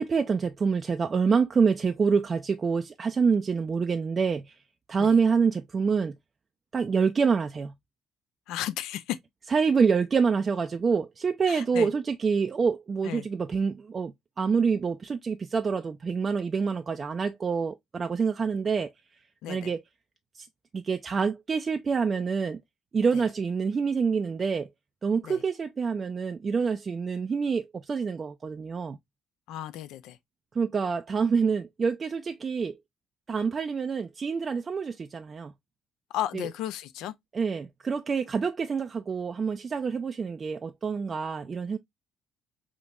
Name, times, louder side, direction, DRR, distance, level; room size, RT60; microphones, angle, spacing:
voice 1, 0.0-4.6 4.9-6.1 6.7-7.7 9.5-18.9 19.5-19.8 20.4-20.5 20.7-22.6 22.9-24.7 25.0-29.0 30.5-32.8 33.3-35.5 36.3-36.5 37.3-41.8, right 5 dB, 35° right, 0.4 m, -26 dB
voice 2, 8.5-9.2 11.5-11.9 13.0-13.3 19.4-19.7 25.2-25.4 29.5-30.2 36.1-37.1, left 12 dB, 65° left, 0.4 m, -34 dB
5.0 x 2.9 x 2.3 m
figure-of-eight pair, 50°, 0 cm